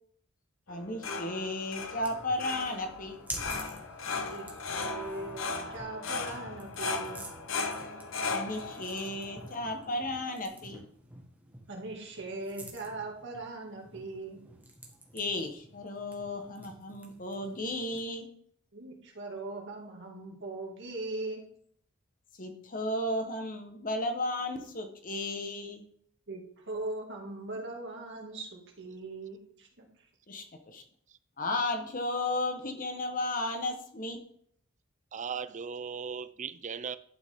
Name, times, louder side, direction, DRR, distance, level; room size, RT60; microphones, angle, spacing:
sound 1, 0.7-10.4, left 4 dB, 65° left, 1.0 m, -37 dB
voice 1, 0.7-3.2 8.3-10.8 15.1-18.2 22.4-25.8 30.3-30.8 31.4-34.2, left 1 dB, 40° left, 1.2 m, -34 dB
sound 2, 1.6-18.2, right 1 dB, 10° right, 1.6 m, -49 dB
voice 2, 4.2-7.2 11.7-14.4 18.7-21.4 26.3-29.9, right 2 dB, 60° right, 2.4 m, -40 dB
voice 3, 35.1-37.0, right 6 dB, 35° right, 0.5 m, -37 dB
11.5 x 6.2 x 3.7 m
head